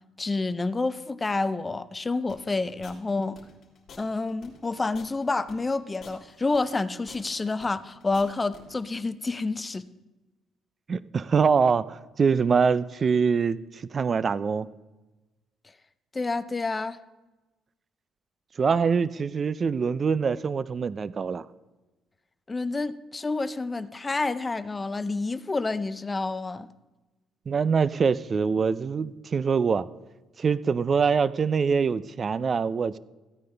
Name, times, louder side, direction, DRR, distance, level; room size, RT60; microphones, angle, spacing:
voice 1, 0.2-3.4 4.0-9.9 16.1-17.0 22.5-26.7, left 3 dB, 20° left, 14 dB, 0.5 m, -29 dB
sound 1, 2.3-8.6, left 5 dB, 50° left, 3.0 m, -50 dB
voice 2, 10.9-14.7 18.6-21.5 27.5-29.9 30.4-33.0, right 5 dB, 35° right, 17 dB, 0.4 m, -24 dB
15.0 x 9.2 x 3.3 m, 1.1 s
cardioid pair, 105°, 0 cm